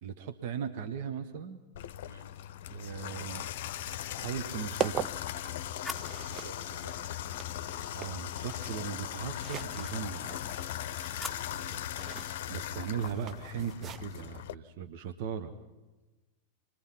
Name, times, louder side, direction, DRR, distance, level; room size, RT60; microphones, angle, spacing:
voice 1, 0.0-1.6 2.7-3.5 4.1-5.2 7.9-10.7 12.5-15.5, right 7 dB, 50° right, 1.4 m, -38 dB
Water tap faucet / Bathtub (filling or washing), 1.7-14.5, left 11 dB, 55° left, 0.8 m, -39 dB
voice 2, 2.0-2.3 6.2-7.1 11.5-12.0, right 2 dB, 75° right, 2.0 m, -51 dB
sound 1, 3.4-14.2, right 9 dB, 30° right, 0.7 m, -43 dB
sound 2, 5.0-8.1 10.5-12.0, left 2 dB, 5° right, 2.1 m, -47 dB
27.0 x 21.5 x 5.8 m
figure-of-eight pair, 90°, 0 cm